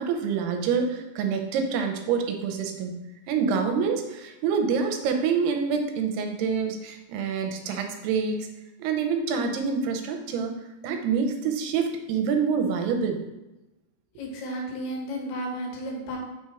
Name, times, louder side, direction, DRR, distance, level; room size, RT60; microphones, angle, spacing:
voice 1, 0.0-3.0 3.3-8.5 8.8-10.6 10.8-13.2, right 6 dB, 80° right, 5 dB, 2.7 m, -26 dB
voice 2, 14.2-16.2, equal, 80° left, 0 dB, 3.2 m, -33 dB
6.3 x 4.3 x 4.8 m, 0.98 s
omnidirectional pair, 4.6 m